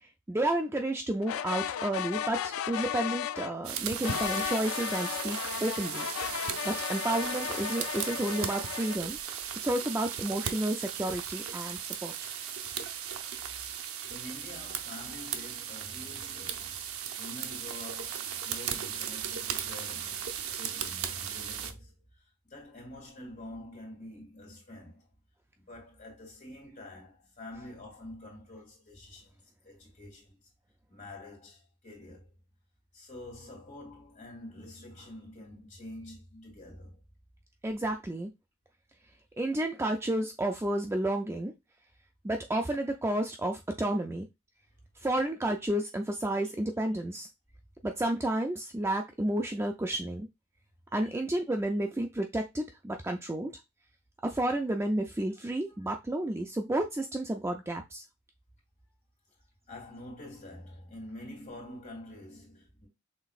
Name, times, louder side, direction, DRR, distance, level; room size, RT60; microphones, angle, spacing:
voice 1, 0.3-6.1 6.6-9.2 9.6-12.1 37.6-38.3 39.4-41.5 42.2-44.3 45.0-47.3 47.8-50.3 50.9-53.5 54.2-58.0, right 1 dB, 10° right, 0.4 m, -31 dB
sound 1, 1.2-3.5 4.0-9.0, left 10 dB, 85° left, 0.3 m, -35 dB
sound 2, 3.6-21.7, right 8 dB, 85° right, 0.6 m, -37 dB
voice 2, 13.9-21.9 22.4-25.1 25.6-30.4 30.9-32.3 32.9-37.0 51.0-51.1 59.7-62.9, left 1 dB, 40° left, 2.7 m, -47 dB
5.8 x 3.6 x 2.4 m
head